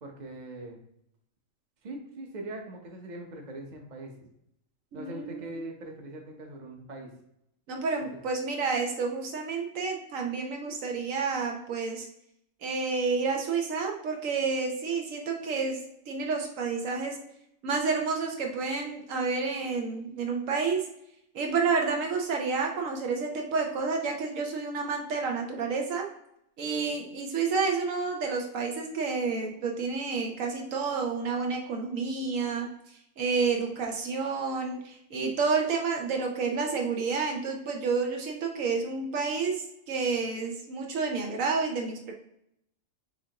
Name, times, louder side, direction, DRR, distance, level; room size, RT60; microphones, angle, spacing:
voice 1, 0.0-0.8 1.8-4.3 4.9-7.1, right 2 dB, 40° right, 1 dB, 0.9 m, -41 dB
voice 2, 4.9-5.5 7.7-12.1 12.6-17.3 17.6-20.9 21.3-26.1 26.6-32.7 33.2-42.1, right 4 dB, 75° right, 1 dB, 1.1 m, -30 dB
6.4 x 2.5 x 2.9 m, 0.78 s
omnidirectional pair, 1.4 m